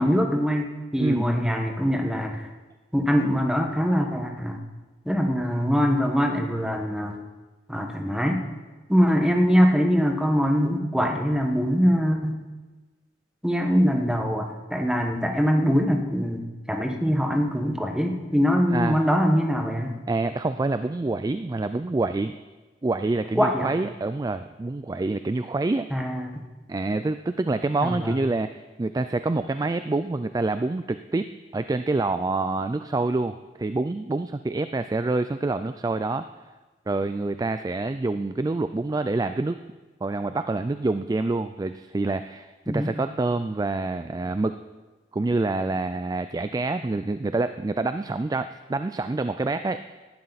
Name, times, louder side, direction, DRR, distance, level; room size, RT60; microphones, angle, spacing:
voice 1, 0.0-2.5 2.9-4.6 5.0-7.2 7.7-8.4 8.9-12.4 13.4-20.0 23.3-23.7 25.9-26.4 27.8-28.1 42.7-42.9, equal, 5° right, 3 dB, 1.3 m, -23 dB
voice 2, 20.1-22.4 22.8-25.9 26.7-36.3 36.9-39.6 40.0-44.5 45.1-49.8, right 2 dB, 20° right, 11 dB, 0.3 m, -27 dB
18.0 x 11.5 x 4.1 m, 1.2 s
head